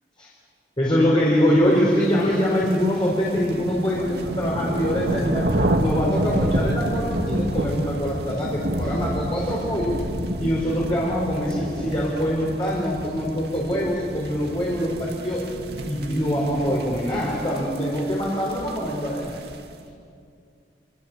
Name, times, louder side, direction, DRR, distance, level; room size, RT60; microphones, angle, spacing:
voice 1, 0.8-5.5 5.8-10.0 10.4-15.4 15.8-19.3, equal, 25° left, -4 dB, 4.6 m, -24 dB
sound 1, 2.2-19.7, right 1 dB, 65° right, 2.3 m, -29 dB
26.5 x 25.0 x 7.5 m, 2.4 s
head